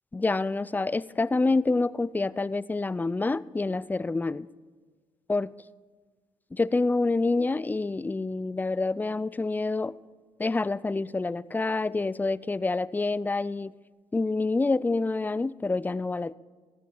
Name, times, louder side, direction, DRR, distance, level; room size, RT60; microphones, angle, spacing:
voice 1, 0.1-4.5 5.3-5.5 6.5-10.0 10.4-13.7 14.1-16.3, left 3 dB, 15° left, 20 dB, 0.4 m, -27 dB
14.5 x 9.8 x 5.8 m, 1.5 s
supercardioid pair, 55°, 13 cm